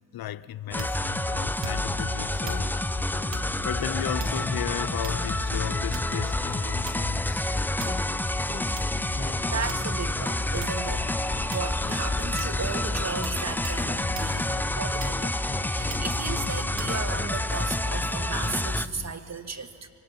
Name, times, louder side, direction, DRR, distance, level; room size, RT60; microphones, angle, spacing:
voice 1, 0.1-2.9 3.6-7.4, left 13 dB, 55° left, 0.6 m, -35 dB
sound 1, 0.7-18.9, left 1 dB, 5° left, 0.5 m, -29 dB
sound 2, 0.8-1.1 1.6-2.0 2.4-2.7 3.3-3.5 4.2-4.6 5.0-5.5 5.9-6.2 6.9-7.2 7.8-8.1 8.8-8.9 9.7-10.1 10.6-10.9 11.5-11.8 12.4-12.6 13.2-13.4 13.6-13.8 14.1-14.3 15.0-15.4 15.9-16.1 16.8-16.9, right 6 dB, 75° right, 1.6 m, -41 dB
sound 3, 1.9-19.1, left 4 dB, 20° left, 1.1 m, -37 dB
voice 2, 9.0-11.1 11.5-15.3 15.7-19.9, right 5 dB, 40° right, 1.5 m, -35 dB
24.0 x 18.0 x 5.9 m
supercardioid pair, 55°, 43 cm